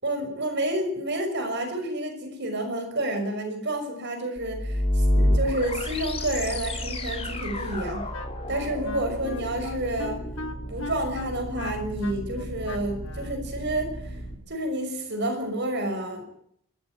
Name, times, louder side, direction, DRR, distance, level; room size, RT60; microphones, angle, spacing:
voice 1, 0.0-8.1 8.5-10.2 10.7-14.2 14.5-16.2, right 1 dB, 50° right, 6 dB, 5.8 m, -29 dB
sound 1, 4.4-14.4, left 1 dB, 25° left, 3.4 m, -30 dB
Wind instrument woodwind instrument, 7.8-13.4, left 3 dB, 60° left, 1.7 m, -38 dB
26.5 x 14.0 x 9.2 m, 0.69 s
head